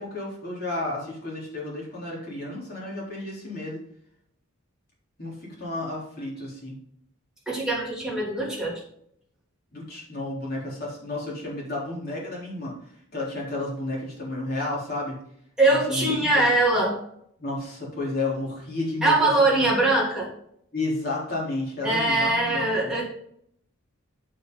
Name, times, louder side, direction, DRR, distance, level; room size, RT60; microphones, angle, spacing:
voice 1, 0.0-3.8 5.2-6.7 9.7-12.7 13.1-15.2 15.7-16.5 17.4-19.6 20.7-23.0, left 2 dB, 45° left, -4 dB, 3.8 m, -32 dB
voice 2, 7.5-8.8 15.6-17.0 19.0-20.3 21.8-23.0, right 2 dB, 5° right, -5 dB, 2.9 m, -22 dB
7.9 x 7.9 x 4.0 m, 0.68 s
head